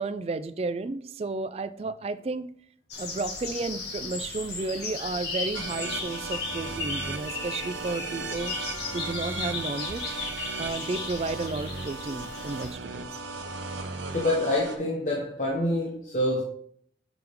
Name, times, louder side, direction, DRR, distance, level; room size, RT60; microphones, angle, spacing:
voice 1, 0.0-2.5 3.0-8.6 8.9-10.1 10.6-13.2, right 3 dB, 35° right, 0.3 m, -32 dB
sound 1, 2.9-12.7, left 4 dB, 70° left, 1.8 m, -36 dB
sound 2, 5.5-14.8, right 3 dB, 85° right, 0.7 m, -37 dB
voice 2, 14.1-16.4, left 1 dB, 40° left, 0.9 m, -26 dB
6.0 x 5.1 x 3.5 m
head